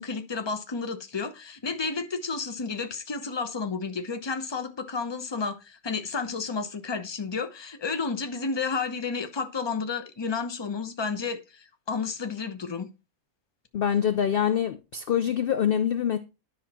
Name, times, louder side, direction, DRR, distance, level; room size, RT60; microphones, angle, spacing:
voice 1, 0.0-12.9, left 4 dB, 25° left, 0.7 m, -31 dB
voice 2, 13.7-16.2, left 9 dB, 55° left, 0.6 m, -25 dB
10.0 x 6.0 x 4.3 m
omnidirectional pair, 1.5 m